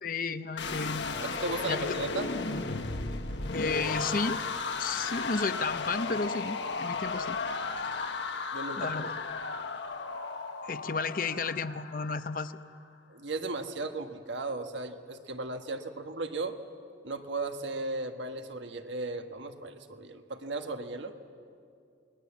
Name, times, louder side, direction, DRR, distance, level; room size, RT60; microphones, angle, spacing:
voice 1, 0.0-1.0 1.7-2.0 3.5-4.4 4.8-7.4 8.8-9.1 10.6-12.6, left 4 dB, 45° left, 12 dB, 0.7 m, -32 dB
sound 1, 0.6-12.6, left 4 dB, 70° left, 1.2 m, -35 dB
voice 2, 1.2-2.3 8.5-9.1 13.1-16.6 17.0-21.1, right 2 dB, 75° right, 6 dB, 1.5 m, -36 dB
28.0 x 21.0 x 7.3 m, 2.4 s
head